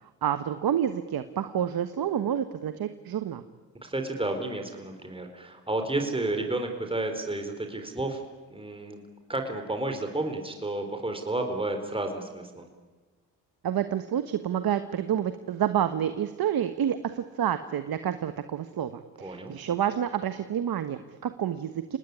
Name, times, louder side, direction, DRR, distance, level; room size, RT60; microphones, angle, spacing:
voice 1, 0.2-3.4 13.6-22.0, right 9 dB, 55° right, 10 dB, 1.4 m, -29 dB
voice 2, 3.8-8.2 8.5-9.0 9.3-12.7 19.2-19.5, right 2 dB, 15° right, 5 dB, 4.4 m, -31 dB
26.5 x 19.0 x 9.8 m, 1.3 s
supercardioid pair, 70°, 42 cm